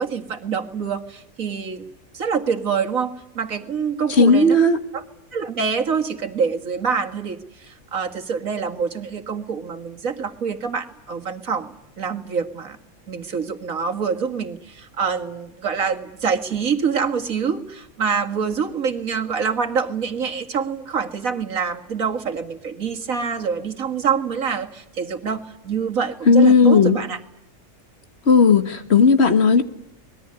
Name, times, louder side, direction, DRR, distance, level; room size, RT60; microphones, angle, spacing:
voice 1, 0.0-1.8 2.1-4.6 4.9-5.0 5.3-12.8 13.1-27.2, right 6 dB, 70° right, 6 dB, 2.3 m, -26 dB
voice 2, 4.1-4.8 26.2-27.0 28.2-29.6, left 4 dB, 50° left, 9 dB, 1.8 m, -14 dB
25.5 x 21.0 x 9.6 m, 0.81 s
omnidirectional pair, 1.4 m